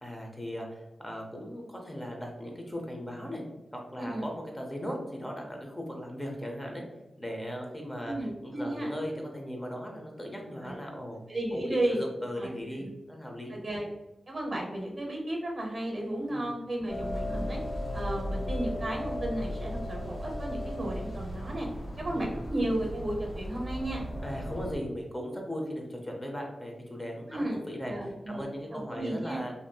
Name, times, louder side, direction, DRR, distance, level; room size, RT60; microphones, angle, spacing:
voice 1, 0.0-3.4 3.7-6.8 7.2-8.2 8.4-11.2 11.5-13.6 16.3-16.5 22.1-22.3 24.2-29.5, equal, 15° left, 1 dB, 0.6 m, -38 dB
voice 2, 8.0-8.9 10.5-10.8 11.3-12.0 12.4-12.5 13.5-13.9 14.3-17.6 17.9-21.7 22.0-24.0 27.3-27.6 27.9-28.4 28.7-29.4, right 1 dB, 40° right, 0 dB, 0.8 m, -33 dB
sound 1, 16.9-24.8, equal, 45° left, 1.0 m, -36 dB
3.0 x 2.6 x 2.2 m, 1.0 s
wide cardioid pair, 110°, 0 cm